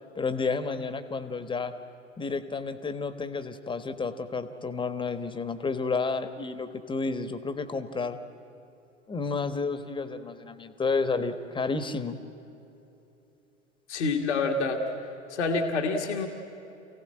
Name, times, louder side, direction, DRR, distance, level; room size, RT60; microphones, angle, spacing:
voice 1, 0.1-1.7 2.2-8.2 9.1-12.2, left 4 dB, 15° left, 11 dB, 1.3 m, -31 dB
voice 2, 13.9-14.8 15.3-16.3, left 3 dB, 65° left, 4 dB, 1.7 m, -27 dB
28.5 x 16.5 x 8.9 m, 2.9 s
figure-of-eight pair, 85°, 36 cm